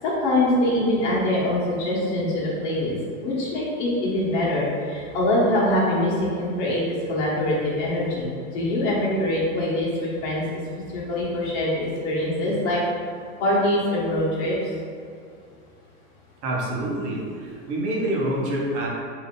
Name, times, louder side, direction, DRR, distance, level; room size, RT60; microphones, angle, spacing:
voice 1, 0.0-6.8 7.1-10.4 10.9-12.8 13.4-14.7, left 1 dB, 45° left, -6 dB, 1.4 m, -24 dB
voice 2, 16.4-18.9, right 1 dB, 50° right, -4 dB, 1.0 m, -26 dB
3.7 x 2.9 x 3.8 m, 2.3 s
hypercardioid pair, 140°, 47 cm